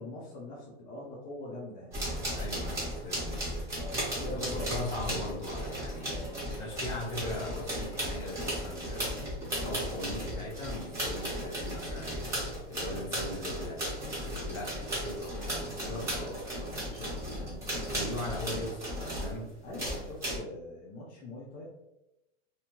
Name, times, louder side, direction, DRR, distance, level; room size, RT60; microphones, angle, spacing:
voice 1, 0.0-2.0 3.8-4.8 6.0-6.6 9.5-9.9 15.6-18.1 19.6-21.7, left 1 dB, 25° left, -4 dB, 0.4 m, -44 dB
sound 1, 1.9-19.4 19.7-20.4, equal, 10° right, 1.0 m, -35 dB
voice 2, 2.3-3.5 4.2-6.1 6.6-9.3 9.6-12.2 12.7-16.8 17.9-19.5, left 1 dB, 45° left, -3 dB, 1.2 m, -39 dB
2.7 x 2.1 x 2.9 m, 0.90 s
supercardioid pair, 140°, 37 cm